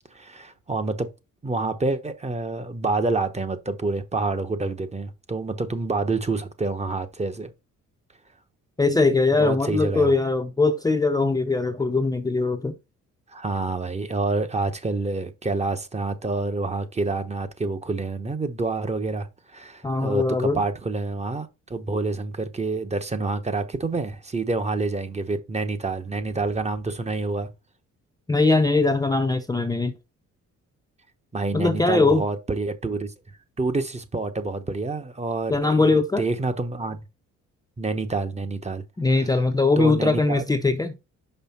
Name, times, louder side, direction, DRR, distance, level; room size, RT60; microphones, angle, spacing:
voice 1, 0.1-1.1 1.4-7.5 9.4-10.1 13.3-27.5 31.3-33.1 33.6-37.0 37.8-38.8 39.8-40.4, right 3 dB, 20° right, 1.0 m, -27 dB
voice 2, 8.8-12.8 19.8-20.6 28.3-29.9 31.5-32.2 35.5-36.2 39.0-41.0, left 3 dB, 10° left, 0.6 m, -21 dB
5.5 x 5.0 x 4.2 m
cardioid pair, 90°, 30 cm